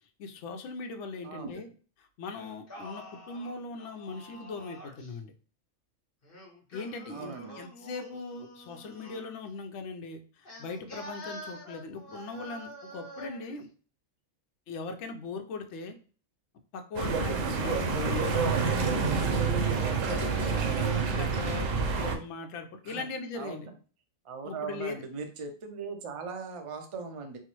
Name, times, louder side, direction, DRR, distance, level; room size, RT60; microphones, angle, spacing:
voice 1, 0.2-1.7 2.2-5.3 6.7-13.7 14.7-16.0 16.7-19.7 20.0-21.7 22.0-23.7 24.4-25.0, left 3 dB, 65° left, 5 dB, 0.9 m, -40 dB
voice 2, 1.2-1.6 7.1-7.6 18.3-18.7 22.8-23.1 23.3-23.6 24.2-27.4, right 5 dB, 55° right, 4 dB, 0.3 m, -39 dB
Singing, 2.3-5.1 6.2-9.4 10.4-13.5, equal, 45° left, 1.1 m, -47 dB
sound 1, 17.0-22.2, right 5 dB, 80° right, 1.0 m, -28 dB
4.5 x 2.0 x 3.0 m, 0.39 s
omnidirectional pair, 1.3 m